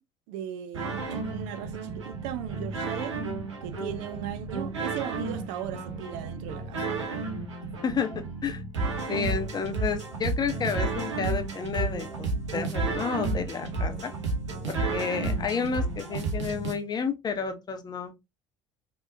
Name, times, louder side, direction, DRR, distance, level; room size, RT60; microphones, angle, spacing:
voice 1, 0.3-3.2 3.6-6.9, right 10 dB, 60° right, 0.5 m, -37 dB
sound 1, 0.7-16.7, right 3 dB, 80° right, 0.8 m, -32 dB
voice 2, 7.8-8.6 9.1-12.3 12.5-14.1 14.7-18.2, left 6 dB, 25° left, 0.7 m, -31 dB
3.3 x 2.9 x 2.5 m
figure-of-eight pair, 65°, 15 cm